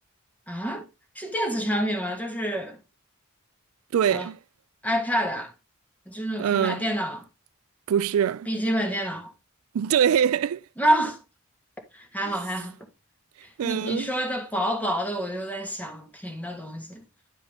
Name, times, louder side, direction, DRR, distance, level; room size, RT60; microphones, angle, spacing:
voice 1, 0.5-0.9 1.2-2.8 4.1-4.3 4.8-5.5 6.1-7.2 8.5-9.3 10.8-11.2 11.9-12.7 13.6-17.0, equal, 5° left, 1.7 m, -28 dB
voice 2, 3.9-4.4 6.4-6.9 7.9-8.5 9.7-10.6 12.3-12.4 13.6-14.1, right 8 dB, 75° right, 0.3 m, -23 dB
10.5 x 4.8 x 3.4 m
head